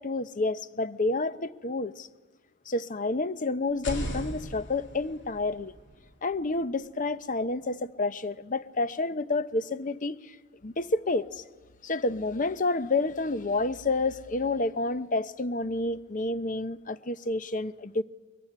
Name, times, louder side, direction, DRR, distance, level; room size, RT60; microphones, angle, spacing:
voice 1, 0.0-2.1 2.7-5.7 6.2-10.3 10.6-11.4 11.8-18.0, left 2 dB, 40° left, 0.8 m, -29 dB
sound 1, 3.7-7.5, equal, 55° left, 3.7 m, -39 dB
23.0 x 23.0 x 9.9 m
head